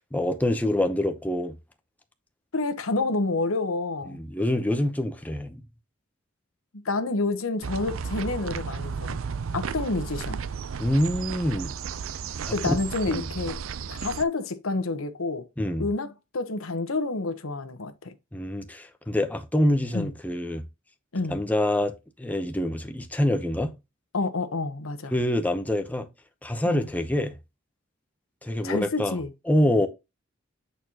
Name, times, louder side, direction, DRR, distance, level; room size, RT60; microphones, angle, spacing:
voice 1, 0.1-1.5 4.1-5.6 10.8-11.7 12.5-12.8 13.1-13.3 15.6-15.9 18.3-20.6 21.3-21.9 22.2-23.7 25.1-26.1 26.4-27.3 28.4-29.2 29.5-29.9, left 1 dB, 10° left, 0.7 m, -25 dB
voice 2, 2.5-4.2 6.8-9.2 9.5-10.4 12.5-13.6 13.9-15.5 15.8-18.1 19.9-20.1 21.1-21.4 24.1-25.1 26.6-26.9 28.6-29.3, left 3 dB, 90° left, 1.0 m, -29 dB
sound 1, 7.6-14.2, right 6 dB, 80° right, 0.5 m, -33 dB
8.4 x 4.5 x 2.8 m
head